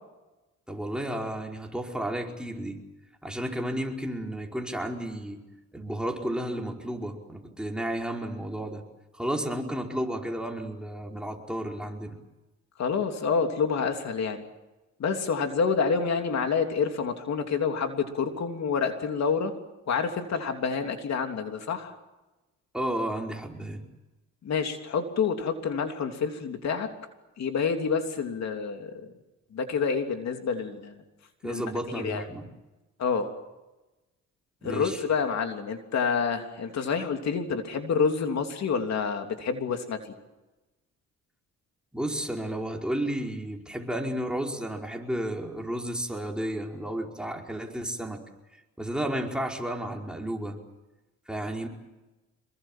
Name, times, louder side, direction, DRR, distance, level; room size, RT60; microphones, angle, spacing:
voice 1, 0.7-2.8 3.2-5.4 5.7-8.8 9.1-12.2 22.7-23.9 31.4-32.5 34.6-35.0 41.9-48.2 48.8-50.6 51.3-51.7, right 1 dB, 5° right, 0 dB, 4.9 m, -32 dB
voice 2, 12.8-14.4 15.0-19.5 19.9-21.9 24.4-26.9 27.4-29.1 29.5-31.0 31.4-31.6 31.9-32.2 33.0-33.3 34.6-40.1, left 5 dB, 60° left, 5 dB, 3.2 m, -28 dB
27.0 x 22.5 x 7.5 m, 1.1 s
cardioid pair, 90°, 30 cm